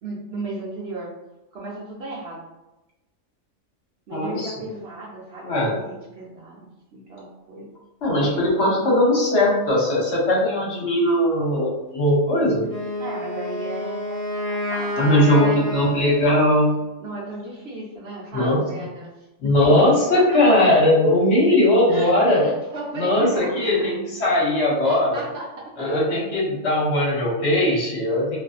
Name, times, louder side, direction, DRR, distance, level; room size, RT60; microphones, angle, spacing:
voice 1, 0.0-1.1 1.5-2.5 4.1-7.7 8.2-8.4 13.0-15.6 17.0-19.9 20.1-20.2 21.9-23.9 24.8-25.9, right 2 dB, 60° right, -4 dB, 0.7 m, -35 dB
voice 2, 4.1-4.5 5.4-5.8 8.0-12.6 15.0-16.7 18.3-18.6 19.4-22.4 23.0-25.2 25.8-28.4, left 1 dB, 60° left, -4 dB, 1.0 m, -19 dB
Wind instrument woodwind instrument, 12.6-16.8, left 1 dB, 35° left, 1.0 m, -29 dB
2.5 x 2.5 x 2.3 m, 1.0 s
omnidirectional pair, 1.4 m